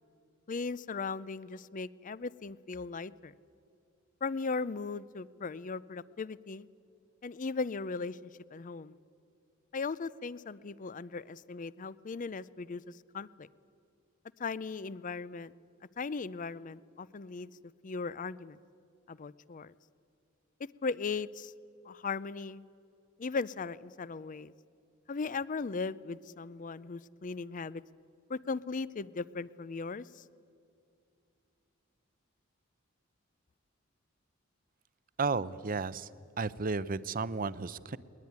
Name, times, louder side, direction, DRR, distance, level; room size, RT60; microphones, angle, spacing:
voice 1, 0.5-3.3 4.2-6.6 7.2-9.0 9.7-12.8 13.1-13.5 14.4-15.5 16.0-17.5 17.8-18.6 19.1-19.7 20.8-21.5 21.9-22.6 23.2-24.5 25.1-27.8 28.3-30.2, left 4 dB, 40° left, 19 dB, 0.5 m, -37 dB
voice 2, 35.2-36.1 36.4-38.0, right 4 dB, 45° right, 17 dB, 0.6 m, -33 dB
21.0 x 20.0 x 9.5 m, 2.5 s
head